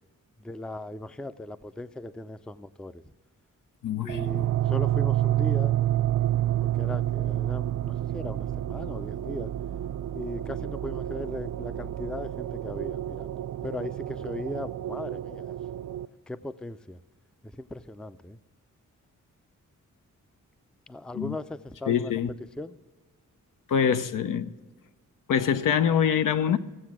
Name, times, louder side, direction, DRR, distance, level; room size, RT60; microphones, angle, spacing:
voice 1, 0.4-3.0 4.0-5.7 6.6-9.5 10.1-13.3 13.6-15.6 16.3-17.0 17.4-18.4 20.9-22.2 22.6-22.8, left 1 dB, 5° left, 0.3 m, -38 dB
voice 2, 3.8-4.2 21.1-21.4 21.9-22.3 23.7-24.5 25.3-26.6, left 8 dB, 85° left, 0.6 m, -24 dB
sound 1, 4.1-16.1, right 12 dB, 70° right, 0.5 m, -29 dB
16.0 x 7.6 x 6.0 m
wide cardioid pair, 95°, 31 cm